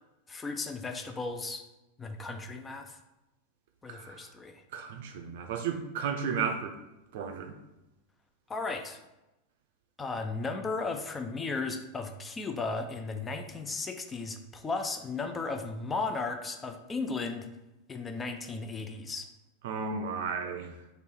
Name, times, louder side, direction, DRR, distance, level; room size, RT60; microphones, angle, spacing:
voice 1, 0.3-1.6 2.0-3.0 3.8-4.6 8.5-9.0 10.0-17.5 17.9-19.3, left 3 dB, 20° left, 6 dB, 0.4 m, -35 dB
voice 2, 3.9-4.3 4.7-6.7 7.1-7.5 19.6-20.7, right 6 dB, 65° right, 4 dB, 0.5 m, -34 dB
3.3 x 2.6 x 4.3 m, 0.97 s
hypercardioid pair, 95°, 0 cm